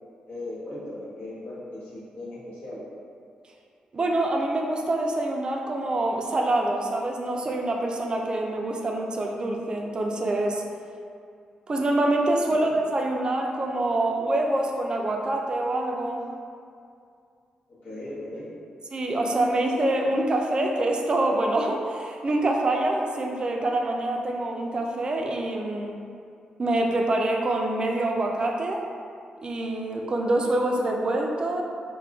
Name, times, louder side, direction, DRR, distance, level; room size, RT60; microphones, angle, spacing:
voice 1, 0.3-2.8 12.5-12.8 17.7-18.5, left 1 dB, 80° left, -9 dB, 0.9 m, -38 dB
voice 2, 3.9-10.6 11.7-16.2 18.9-26.0 26.6-28.9 29.4-31.6, right 1 dB, 35° right, 1 dB, 0.3 m, -25 dB
2.3 x 2.1 x 3.4 m, 2.3 s
cardioid pair, 75°, 2 cm